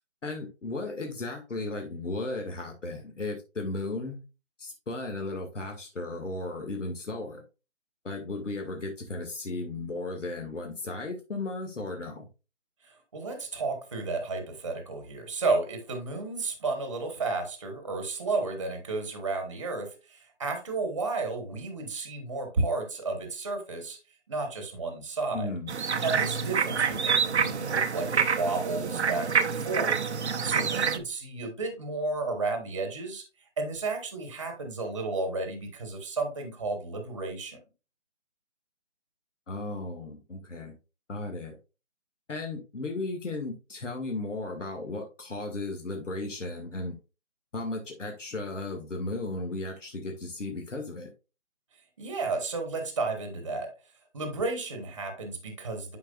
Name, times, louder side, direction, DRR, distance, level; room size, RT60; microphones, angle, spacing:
voice 1, 0.2-4.2 4.6-7.4 8.0-12.3 25.3-25.7 39.5-40.8 41.1-41.6 42.3-47.0 47.5-51.1, left 2 dB, 80° left, 1.9 m, -35 dB
voice 2, 12.8-24.0 24.3-25.5 26.0-30.0 30.4-33.2 33.6-37.6 52.0-53.7 54.1-56.0, right 3 dB, 25° right, 1.2 m, -32 dB
sound 1, 25.7-31.0, right 6 dB, 65° right, 0.8 m, -27 dB
10.5 x 4.8 x 2.3 m
hypercardioid pair, 170°, 37 cm